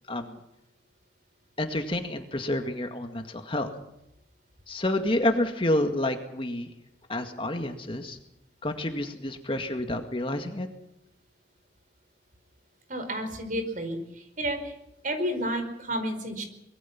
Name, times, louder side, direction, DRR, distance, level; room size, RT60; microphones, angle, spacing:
voice 1, 1.6-3.7 4.7-6.7 7.1-8.2 8.6-10.7, left 1 dB, 30° left, 5 dB, 2.1 m, -29 dB
voice 2, 12.9-14.7 15.0-16.4, equal, 45° right, 7 dB, 5.0 m, -31 dB
25.0 x 22.5 x 6.0 m, 0.81 s
head